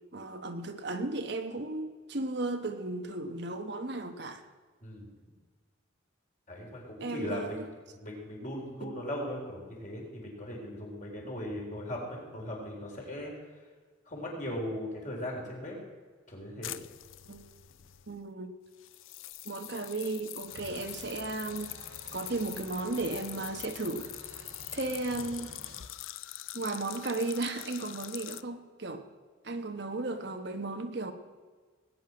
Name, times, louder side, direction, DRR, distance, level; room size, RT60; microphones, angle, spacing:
voice 1, 0.1-4.5 7.0-7.7 8.8-9.0 17.3-17.4 18.1-18.5 19.4-21.7 22.1-24.1 24.7-25.5 26.5-29.0 29.4-31.1, right 2 dB, 55° right, 6 dB, 1.1 m, -35 dB
voice 2, 6.5-7.6 7.9-13.3 14.1-15.8 16.3-16.7, left 1 dB, 40° left, -1 dB, 4.1 m, -38 dB
sound 1, 16.6-18.2 18.8-28.4, left 15 dB, 80° left, 0.5 m, -44 dB
sound 2, 20.5-25.9, right 2 dB, 85° right, 1.6 m, -51 dB
19.5 x 9.4 x 6.2 m, 1.5 s
head